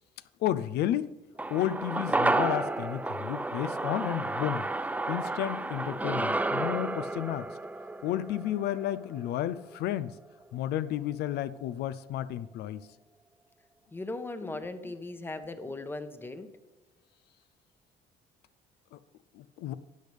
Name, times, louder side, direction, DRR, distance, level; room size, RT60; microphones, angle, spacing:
voice 1, 0.4-1.1 1.5-4.6 5.1-7.5 8.0-10.1 10.5-12.8 18.9-19.0 19.4-19.7, left 12 dB, 75° left, 14 dB, 0.5 m, -32 dB
sound 1, 1.4-9.9 10.2-10.3, right 2 dB, 10° right, 0.4 m, -31 dB
voice 2, 13.9-16.5, left 2 dB, 15° left, 9 dB, 0.9 m, -38 dB
13.0 x 8.3 x 3.4 m, 1.1 s
cardioid pair, 110°, 17 cm